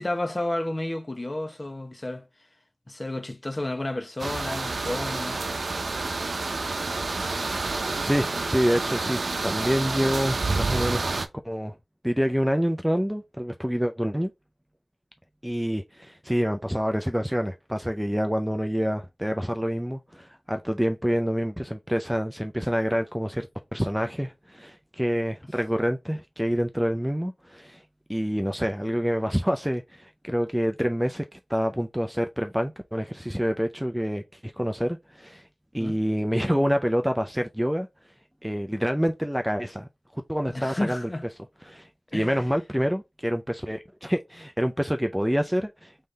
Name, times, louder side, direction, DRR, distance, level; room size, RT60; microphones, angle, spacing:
voice 1, 0.0-2.3 2.9-5.4 35.8-36.0 40.5-41.2 42.1-42.4, left 1 dB, 30° left, 0.9 m, -31 dB
sound 1, 4.2-11.3, right 3 dB, 75° right, 0.7 m, -29 dB
voice 2, 8.0-11.0 11.4-11.8 12.0-14.3 15.4-27.8 28.1-35.4 35.7-37.9 38.4-41.1 41.7-45.9, equal, 5° right, 0.4 m, -27 dB
3.8 x 3.3 x 4.0 m
wide cardioid pair, 80°, 0 cm